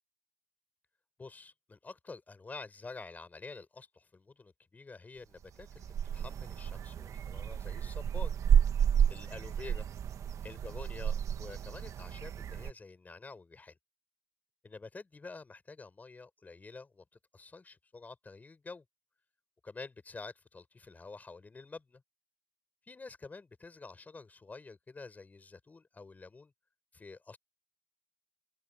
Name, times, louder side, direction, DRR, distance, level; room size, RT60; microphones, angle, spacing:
voice 1, 1.2-8.3 9.1-9.9 10.4-13.8 14.6-17.0 17.3-18.8 19.6-22.0 22.9-26.5 26.9-27.4, left 3 dB, 25° left, 5.8 m, -48 dB
sound 1, 5.4-12.7, right 8 dB, 60° right, 1.7 m, -31 dB
open air
cardioid pair, 80°, 6 cm